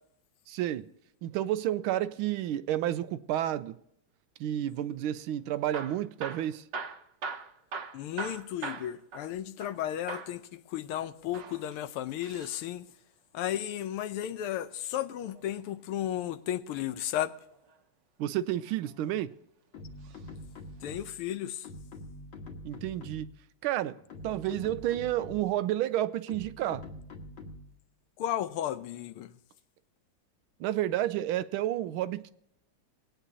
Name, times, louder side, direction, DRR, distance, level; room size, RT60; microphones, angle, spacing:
voice 1, 0.5-0.9 1.2-3.8 4.4-6.7 18.2-19.3 22.6-23.3 23.6-24.0 24.2-26.8 30.6-32.3, right 12 dB, 80° right, 1.3 m, -30 dB
Hammer / Drill, 5.6-9.8 10.1-10.4 11.2-12.6 14.4-15.6 17.3-17.8 18.5-19.3 20.0-20.3 20.6-20.7 21.3-21.4, right 5 dB, 60° right, 1.4 m, -41 dB
voice 2, 7.9-12.9 13.3-17.3 20.8-21.7 28.2-29.3, left 11 dB, 85° left, 1.6 m, -34 dB
sound 1, 19.7-21.3 21.6-23.4 24.0-25.6 26.3-27.8, left 2 dB, 65° left, 2.3 m, -45 dB
20.0 x 9.1 x 2.7 m
omnidirectional pair, 2.4 m